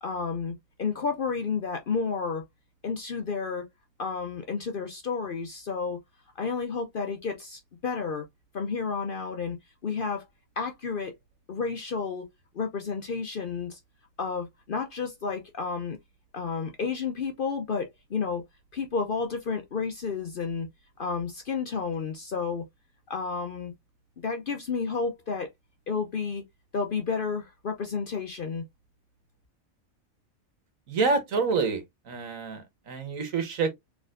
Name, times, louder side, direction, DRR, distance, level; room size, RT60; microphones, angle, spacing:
voice 1, 0.0-2.4 2.8-3.6 4.0-6.0 6.4-8.2 8.5-9.6 9.8-10.2 10.6-11.1 11.5-12.3 12.5-13.8 14.2-16.0 16.3-18.4 18.7-20.7 21.0-22.6 23.1-23.7 24.2-25.5 25.9-26.4 26.7-28.6, left 5 dB, 50° left, 0.7 m, -31 dB
voice 2, 30.9-33.7, right 4 dB, 75° right, 1.6 m, -28 dB
4.2 x 3.4 x 2.5 m
omnidirectional pair, 1.4 m